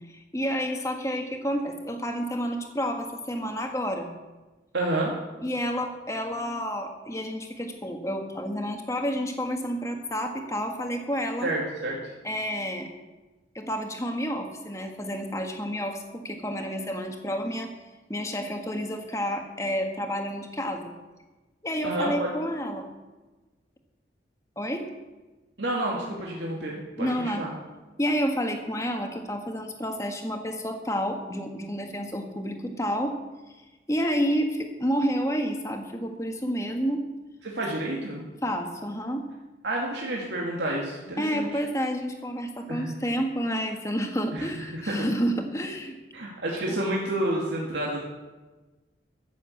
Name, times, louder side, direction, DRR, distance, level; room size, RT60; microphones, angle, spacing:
voice 1, 0.1-4.1 5.4-11.5 12.2-12.9 13.5-17.7 18.1-20.9 21.6-22.9 24.6-24.8 27.0-27.5 28.0-33.2 33.9-37.0 38.4-39.3 41.2-46.0 46.7-46.8, equal, 15° left, 4 dB, 1.4 m, -30 dB
voice 2, 4.7-5.2 11.4-12.1 21.8-22.3 25.6-27.5 37.4-38.2 39.6-41.5 42.7-42.9 44.3-45.1 46.1-48.0, right 1 dB, 80° right, -3 dB, 2.2 m, -29 dB
14.0 x 7.2 x 8.4 m, 1.2 s
head